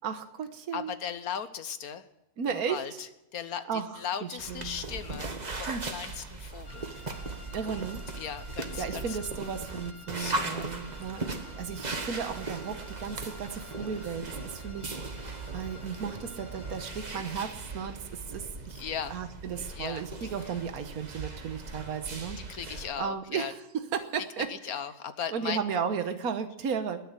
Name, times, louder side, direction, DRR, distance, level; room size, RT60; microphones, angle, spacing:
voice 1, 0.0-0.9 2.4-3.0 3.7-4.8 5.7-5.8 7.5-8.0 8.8-18.8 19.1-24.5 25.3-27.0, right 6 dB, 80° right, 9 dB, 1.6 m, -35 dB
voice 2, 0.7-2.1 2.5-7.1 7.6-7.9 8.2-9.2 10.1-10.7 18.7-19.1 19.7-20.3 22.5-23.5 24.5-25.6, left 8 dB, 80° left, 12 dB, 1.6 m, -38 dB
sound 1, 4.4-22.9, right 3 dB, 30° right, 1.4 m, -38 dB
sound 2, 6.6-17.1, left 2 dB, 65° left, 2.6 m, -52 dB
20.5 x 7.0 x 9.6 m, 0.89 s
omnidirectional pair, 1.5 m